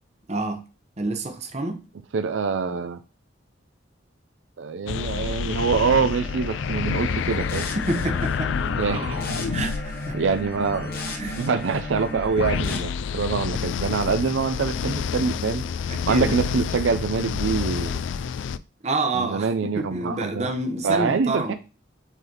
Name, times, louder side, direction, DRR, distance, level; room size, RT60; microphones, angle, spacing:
voice 1, 0.3-0.6 1.0-1.8 7.9-8.5 9.5-10.2 11.1-11.4 15.9-16.3 18.8-21.5, right 2 dB, 35° right, 0.9 m, -28 dB
voice 2, 2.1-3.0 4.6-7.7 8.8-9.5 10.1-11.0 11.4-15.6 16.1-17.9 19.1-20.5 20.8-21.5, right 5 dB, 75° right, 0.4 m, -25 dB
sound 1, 4.9-18.6, left 6 dB, 75° left, 0.3 m, -29 dB
sound 2, 5.9-12.8, left 2 dB, 50° left, 0.9 m, -34 dB
8.1 x 3.9 x 2.9 m
head